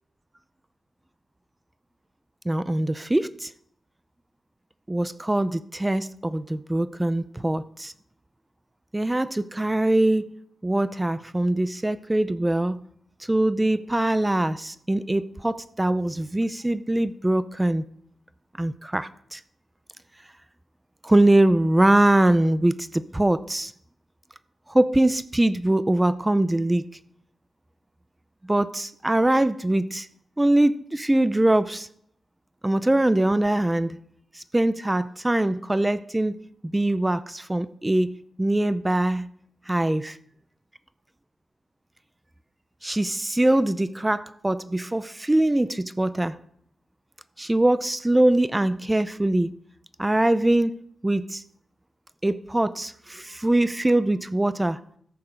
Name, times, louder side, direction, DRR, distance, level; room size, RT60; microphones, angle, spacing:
voice 1, 2.5-3.5 4.9-7.9 8.9-10.3 10.6-12.8 13.2-17.8 18.6-19.4 21.0-23.7 24.7-26.8 28.4-30.1 30.4-31.9 32.6-34.0 34.3-36.4 36.6-38.1 38.4-39.3 39.7-40.2 42.8-46.4 47.4-49.6 50.0-50.8 51.0-51.4 52.2-54.8, right 1 dB, 15° right, 0.5 m, -22 dB
13.5 x 6.9 x 5.0 m
cardioid pair, 80°, 0 cm